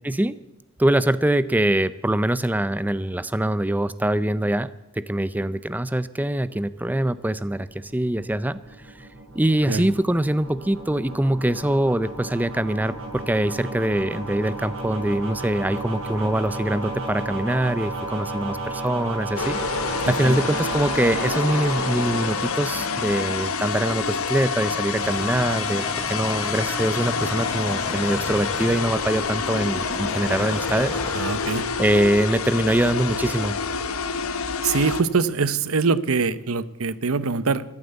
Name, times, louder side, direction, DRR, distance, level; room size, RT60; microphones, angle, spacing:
voice 1, 0.0-0.4 0.8-8.6 8.9-9.1 9.3-19.6 20.1-31.0 31.8-33.5, right 1 dB, 10° right, 16 dB, 0.4 m, -23 dB
sound 1, 7.4-23.3, right 2 dB, 65° right, 7.2 m, -33 dB
sound 2, 19.4-35.0, left 5 dB, 90° left, 1.2 m, -27 dB
sound 3, 24.9-31.6, left 1 dB, 15° left, 4.1 m, -34 dB
voice 2, 31.1-31.6 34.6-37.6, right 4 dB, 85° right, 17 dB, 0.8 m, -23 dB
14.5 x 11.5 x 8.1 m, 0.97 s
head